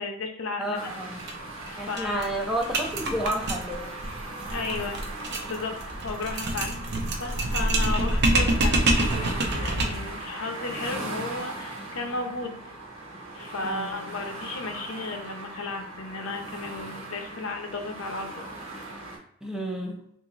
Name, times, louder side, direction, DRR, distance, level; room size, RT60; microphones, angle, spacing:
voice 1, 0.0-0.9 1.2-1.4 1.7-2.3 4.5-5.0 5.5-5.8 6.0-6.7 7.2-12.6 13.3-18.5, left 3 dB, 70° left, 4 dB, 0.6 m, -34 dB
voice 2, 0.6-1.2 1.8-3.9 13.6-14.1 19.4-20.1, right 1 dB, 5° right, 0 dB, 0.4 m, -31 dB
sound 1, 0.7-19.2, right 2 dB, 85° right, 1.1 m, -39 dB
sound 2, 1.2-1.3 1.6-1.7 2.0-10.1, right 1 dB, 50° right, 0.6 m, -26 dB
2.9 x 2.5 x 3.9 m, 0.72 s
head